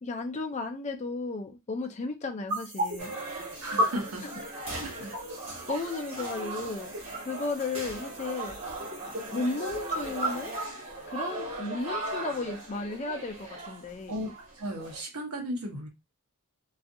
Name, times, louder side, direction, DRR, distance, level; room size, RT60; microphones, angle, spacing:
voice 1, 0.0-3.2 4.2-4.3 5.7-6.9 7.2-8.6 9.3-10.5 11.1-14.2, left 3 dB, 30° left, 0.4 m, -34 dB
sound 1, 2.5-10.7, equal, 55° right, 1.2 m, -36 dB
sound 2, 3.0-15.0, right 2 dB, 25° right, 1.1 m, -38 dB
voice 2, 3.6-4.2 4.7-5.2 14.1-14.3 14.6-15.9, equal, 75° right, 0.8 m, -35 dB
2.6 x 2.4 x 2.5 m
head